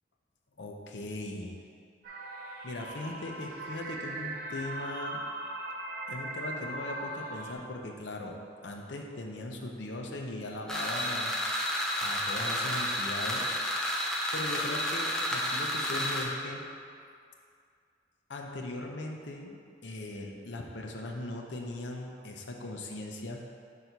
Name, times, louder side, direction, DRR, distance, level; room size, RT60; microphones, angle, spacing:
voice 1, 0.6-1.6 2.6-5.2 6.1-8.4 8.6-11.3 12.0-13.5 14.3-16.7 18.3-19.6 19.8-23.4, left 2 dB, 75° left, 1 dB, 0.7 m, -39 dB
sound 1, 2.0-7.5, right 1 dB, 50° right, 0.6 m, -39 dB
sound 2, 10.7-16.2, equal, 5° left, 0.6 m, -31 dB
5.6 x 4.1 x 4.5 m, 2.3 s
head